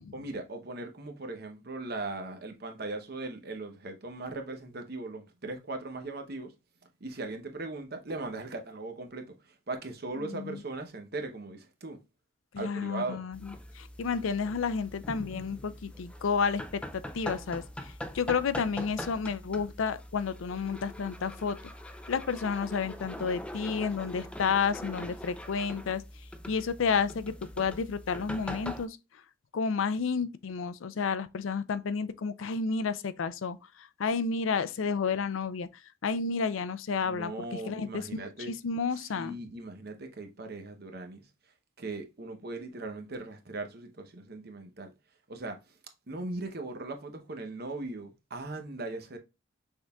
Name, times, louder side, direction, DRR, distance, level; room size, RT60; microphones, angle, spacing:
voice 1, 0.1-6.5 7.0-12.0 12.6-13.3 37.1-38.5 39.1-41.2 41.8-44.9 45.3-45.6 46.1-49.2, right 2 dB, 50° right, 0.8 m, -39 dB
voice 2, 10.2-10.6 12.5-21.6 22.1-26.0 26.5-29.0 29.5-35.7 36.0-39.4, left 5 dB, 80° left, 0.4 m, -31 dB
sound 1, 13.3-28.9, left 1 dB, 5° left, 0.3 m, -42 dB
6.3 x 3.6 x 2.3 m
head